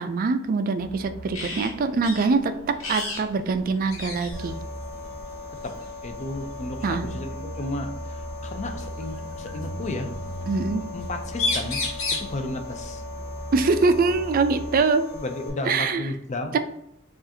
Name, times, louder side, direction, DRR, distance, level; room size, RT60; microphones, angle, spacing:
voice 1, 0.0-4.6 6.8-7.1 10.5-10.8 13.5-15.0 15.7-16.0 16.5-16.6, right 4 dB, 45° right, 9 dB, 0.3 m, -23 dB
sound 1, 0.8-14.8, right 1 dB, 90° right, 0.6 m, -39 dB
sound 2, 1.3-1.7 2.0-2.3 2.8-3.2 3.5-3.6 3.9-4.5 5.7-5.9 7.6-7.7 8.8-9.6 11.0-11.1 11.3-12.3 14.3-14.4 14.8-15.8, left 3 dB, 85° left, 1.1 m, -30 dB
sound 3, 4.3-15.5, left 4 dB, 10° left, 1.4 m, -39 dB
voice 2, 6.0-10.1 10.9-11.8 12.2-13.0 15.1-16.6, left 2 dB, 35° left, 5 dB, 0.5 m, -33 dB
4.7 x 2.5 x 2.7 m, 0.76 s
head